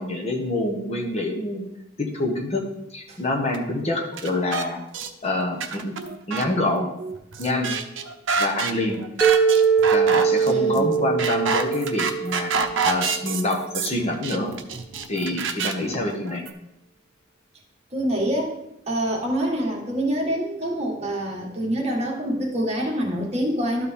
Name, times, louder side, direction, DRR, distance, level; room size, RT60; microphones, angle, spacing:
voice 1, 0.0-1.7 2.0-2.6 2.9-4.8 5.2-5.9 6.3-6.9 7.4-7.7 8.4-9.0 9.9-12.5 12.8-14.5 15.1-16.4, left 2 dB, 35° left, 1 dB, 1.1 m, -26 dB
sound 1, 3.5-3.6 4.1-4.7 4.9-5.1 5.4-16.5, right 5 dB, 70° right, 0.7 m, -28 dB
Mallet percussion, 9.2-13.4, right 6 dB, ahead, 0.7 m, -22 dB
voice 2, 10.5-10.9 17.9-18.5 18.9-23.9, equal, 35° right, -1 dB, 1.6 m, -26 dB
12.5 x 4.4 x 3.6 m, 0.83 s
head